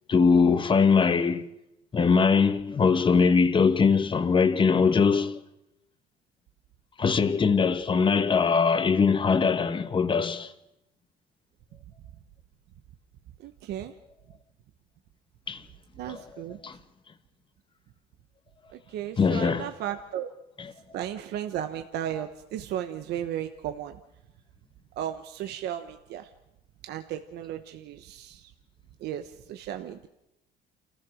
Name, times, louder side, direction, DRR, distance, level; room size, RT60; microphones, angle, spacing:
voice 1, 0.1-1.5 1.9-5.4 7.0-10.5 15.5-15.6 16.1-16.8 19.2-19.7 20.6-20.7, left 5 dB, 30° left, 1.3 m, -22 dB
voice 2, 13.4-13.9 16.0-16.6 18.7-20.3 20.9-24.0 25.0-26.3 26.9-28.4 29.0-30.1, right 10 dB, 75° right, 1.1 m, -35 dB
28.0 x 15.0 x 6.4 m
cardioid pair, 110°, 17 cm